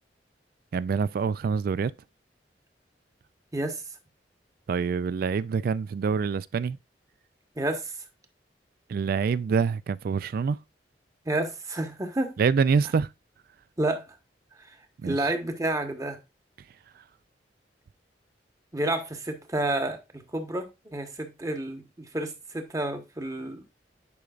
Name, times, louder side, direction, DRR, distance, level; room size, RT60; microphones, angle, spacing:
voice 1, 0.7-1.9 4.7-6.8 8.9-10.6 12.4-13.1 15.0-15.3, right 5 dB, 55° right, 0.3 m, -26 dB
voice 2, 7.6-8.0 11.2-12.3 13.8-14.2 14.6-14.8 15.0-16.2 18.7-23.6, right 1 dB, 20° right, 1.1 m, -30 dB
9.7 x 5.1 x 2.4 m
head